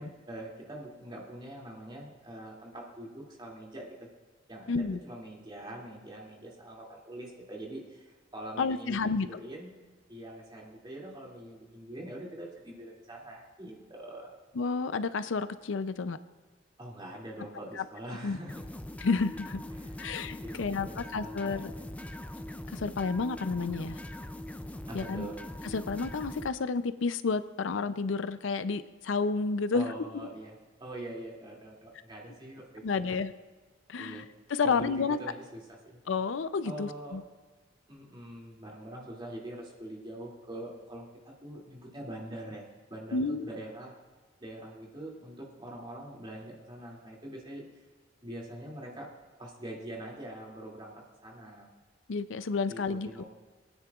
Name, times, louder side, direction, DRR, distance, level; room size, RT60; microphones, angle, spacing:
voice 1, 0.0-4.1 4.5-9.7 10.1-14.3 16.8-18.6 19.7-20.0 20.4-21.9 24.9-25.4 29.7-30.5 30.8-33.1 34.0-34.3 34.6-35.6 35.9-36.0 36.6-37.2 37.9-44.0 44.4-47.6 48.2-49.1 49.4-50.9 51.2-51.7 52.7-53.2, right 1 dB, 25° right, -3 dB, 2.5 m, -44 dB
voice 2, 4.7-5.0 8.6-9.3 14.6-16.2 17.8-17.9 18.2-18.4 19.0-19.6 20.0-21.7 22.7-24.0 24.9-25.3 25.7-29.9 32.8-33.3 33.9-35.2 36.1-37.2 43.1-43.5 52.1-53.2, left 4 dB, 90° left, 13 dB, 0.5 m, -30 dB
sound 1, 18.5-26.5, left 1 dB, 5° left, 0.3 m, -42 dB
23.0 x 9.7 x 2.4 m, 1.4 s
head